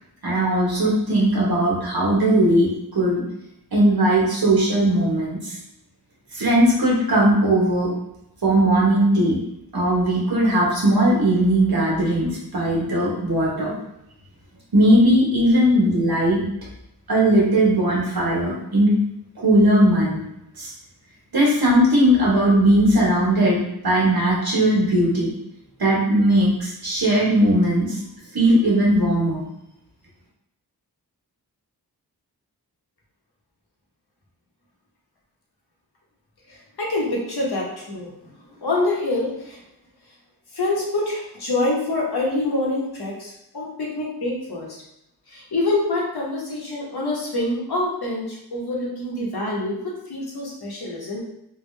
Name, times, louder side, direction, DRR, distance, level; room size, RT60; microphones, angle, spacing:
voice 1, 0.2-3.2 3.7-5.5 6.3-7.9 8.4-9.4 9.7-13.7 14.7-16.4 17.1-19.0 19.4-20.2 20.6-20.7 21.3-23.6 23.8-25.3 25.8-28.0 28.3-29.4, right 1 dB, 65° right, -4 dB, 1.3 m, -18 dB
voice 2, 36.5-38.3 38.6-39.6 40.5-44.8 45.3-51.2, left 2 dB, 70° left, -3 dB, 1.1 m, -26 dB
3.5 x 2.4 x 3.2 m, 0.82 s
wide cardioid pair, 75°, 39 cm